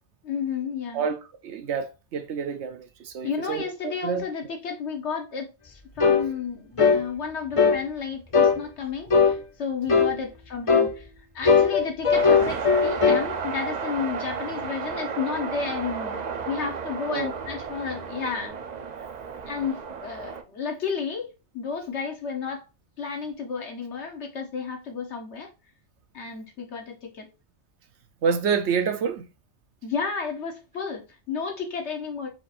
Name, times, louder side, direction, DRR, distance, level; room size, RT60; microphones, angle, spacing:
voice 1, 0.2-1.1 3.2-11.1 11.3-18.5 19.5-21.3 21.5-22.6 23.0-25.5 26.1-27.3 29.8-32.3, left 6 dB, 75° left, 1.4 m, -32 dB
voice 2, 1.4-4.2 17.1-17.3 28.2-29.3, right 6 dB, 75° right, 1.0 m, -28 dB
sound 1, 6.0-6.3 6.8-7.0 7.6-7.8 8.3-8.6 9.1-9.4 9.9-10.2 10.7-10.9 11.5-13.3, left 5 dB, 35° left, 0.6 m, -19 dB
sound 2, 12.1-20.4, right 6 dB, 50° right, 0.6 m, -33 dB
4.6 x 2.5 x 4.2 m
omnidirectional pair, 1.2 m